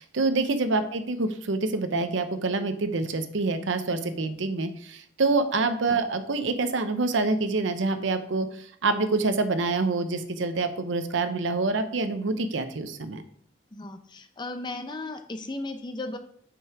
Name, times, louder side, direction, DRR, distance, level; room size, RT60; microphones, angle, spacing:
voice 1, 0.0-13.2, right 3 dB, 70° right, 10 dB, 0.7 m, -26 dB
voice 2, 13.7-16.2, left 2 dB, 20° left, 8 dB, 0.5 m, -35 dB
5.6 x 5.4 x 4.7 m, 0.63 s
head